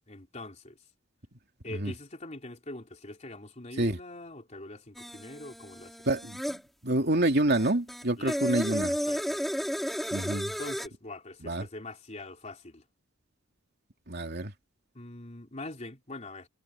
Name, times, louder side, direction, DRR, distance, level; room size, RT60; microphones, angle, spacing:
voice 1, 0.1-0.8 1.6-6.0 8.2-8.4 9.1-9.4 10.6-12.8 14.9-16.5, left 2 dB, 35° left, 3.7 m, -43 dB
sound 1, 5.0-6.6 7.5-10.9, equal, ahead, 5.0 m, -33 dB
voice 2, 6.1-6.6 6.8-9.0 10.1-10.5 11.4-11.7 14.1-14.5, right 1 dB, 50° right, 3.0 m, -27 dB
head